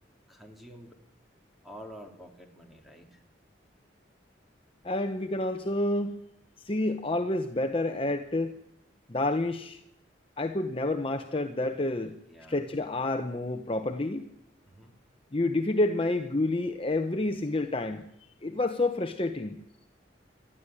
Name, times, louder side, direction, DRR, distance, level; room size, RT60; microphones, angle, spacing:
voice 1, 0.3-1.0 1.6-3.2 12.3-12.7 14.7-14.9, equal, ahead, 3 dB, 3.0 m, -48 dB
voice 2, 4.8-6.2 6.6-8.5 9.1-9.8 10.4-12.1 12.5-14.2 15.3-18.0 18.4-19.6, left 2 dB, 30° left, 7 dB, 0.9 m, -29 dB
20.0 x 13.5 x 9.9 m, 0.79 s
head